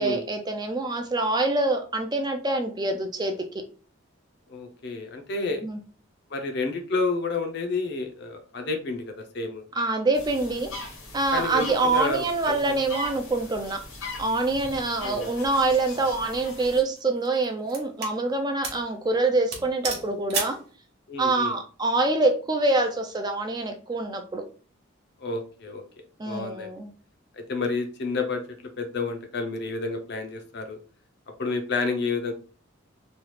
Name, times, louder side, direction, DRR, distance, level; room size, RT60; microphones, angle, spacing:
voice 1, 0.0-3.3 5.6-5.8 9.8-13.8 14.2-20.6 21.2-24.4 26.2-26.9, right 2 dB, 20° right, 4 dB, 0.3 m, -25 dB
voice 2, 4.5-5.6 6.3-9.6 11.3-12.8 15.0-15.3 21.1-21.5 25.2-25.8 26.3-26.7 27.3-28.4 28.8-30.8 31.4-32.3, left 3 dB, 55° left, 4 dB, 0.5 m, -30 dB
sound 1, 10.1-16.8, left 2 dB, 90° left, 1.2 m, -40 dB
sound 2, 16.0-16.2 17.0-18.2 18.6-18.9 19.2-19.3 19.5-20.6, right 5 dB, 50° right, 0.8 m, -33 dB
3.1 x 2.3 x 3.1 m, 0.39 s
head